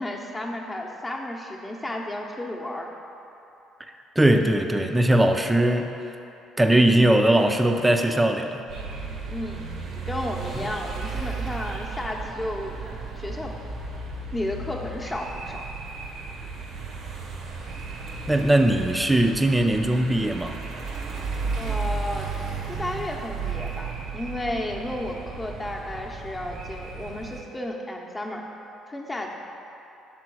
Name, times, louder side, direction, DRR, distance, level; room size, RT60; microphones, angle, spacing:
voice 1, 0.0-2.9 9.3-12.8 13.2-13.5 14.3-15.6 21.5-22.3 22.7-28.4 28.9-29.3, left 1 dB, 20° left, 0 dB, 0.9 m, -33 dB
voice 2, 4.2-5.9 6.6-8.6 18.3-20.6, right 1 dB, 15° right, 5 dB, 0.6 m, -20 dB
sound 1, 8.7-27.4, right 4 dB, 65° right, 0.9 m, -34 dB
6.1 x 3.8 x 6.2 m, 2.8 s
hypercardioid pair, 60°, 0 cm